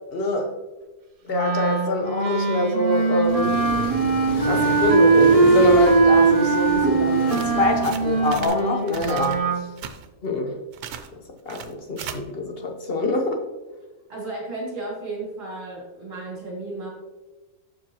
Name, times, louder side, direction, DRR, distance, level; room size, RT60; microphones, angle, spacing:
voice 1, 0.1-0.5 1.3-3.6 4.4-9.4 10.2-10.5 11.5-13.4, left 2 dB, 45° left, 3 dB, 0.9 m, -24 dB
Wind instrument woodwind instrument, 1.3-9.6, right 4 dB, 50° right, 0.4 m, -20 dB
Accelerating revving vroom, 3.2-8.5, left 1 dB, 85° left, 1.8 m, -32 dB
sound 1, 7.2-8.6 8.9-9.4 9.7-10.1 10.7-11.1 11.5-12.1, right 8 dB, 85° right, 1.1 m, -37 dB
voice 2, 14.1-16.9, right 2 dB, 35° right, -5 dB, 2.4 m, -33 dB
7.3 x 6.1 x 2.9 m, 1.1 s
omnidirectional pair, 1.6 m